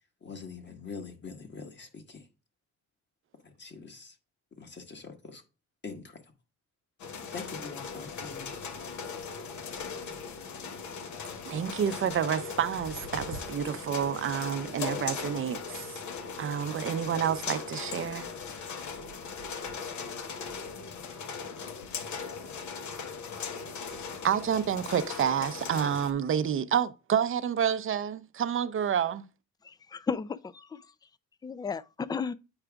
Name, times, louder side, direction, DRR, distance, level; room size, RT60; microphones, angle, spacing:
voice 1, 0.2-2.3 3.4-4.1 4.6-5.4 5.8-6.2 7.3-8.5, left 5 dB, 35° left, 1.4 m, -43 dB
sound 1, 7.0-26.1, left 5 dB, 70° left, 1.0 m, -39 dB
voice 2, 11.5-16.0 16.4-18.3 18.5-18.8 24.2-29.2, right 8 dB, 45° right, 0.6 m, -29 dB
voice 3, 29.6-30.9 31.4-32.3, left 5 dB, 15° left, 0.3 m, -34 dB
8.8 x 4.8 x 2.3 m
cardioid pair, 90°, 30 cm